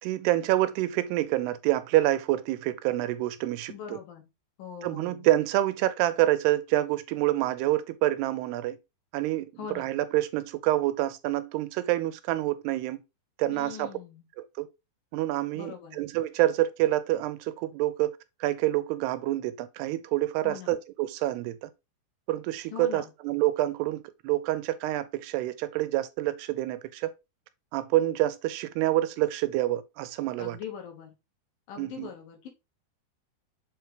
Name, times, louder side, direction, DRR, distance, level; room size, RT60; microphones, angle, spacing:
voice 1, 0.0-4.0 4.8-8.8 9.1-13.0 13.4-13.9 14.4-14.7 15.1-21.7 22.3-27.1 27.7-30.6 31.8-32.1, right 15 dB, 90° right, 2.8 m, -27 dB
voice 2, 3.7-4.2 4.6-5.3 9.6-9.9 13.5-14.3 15.5-16.0 20.4-20.7 22.7-23.1 30.4-31.2 31.7-32.5, left 7 dB, 65° left, 3.1 m, -41 dB
7.1 x 4.7 x 3.1 m
omnidirectional pair, 4.6 m